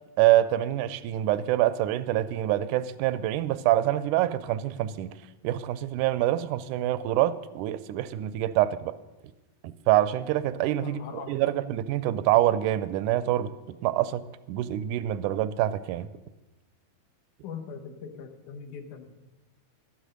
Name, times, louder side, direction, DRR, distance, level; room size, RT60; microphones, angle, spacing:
voice 1, 0.2-5.1 5.4-8.9 9.9-13.5 13.8-14.2 14.5-16.1, right 13 dB, 85° right, 15 dB, 2.0 m, -25 dB
voice 2, 10.8-11.4 17.4-19.3, left 6 dB, 80° left, 5 dB, 2.6 m, -41 dB
12.5 x 8.4 x 6.5 m, 1.1 s
omnidirectional pair, 3.6 m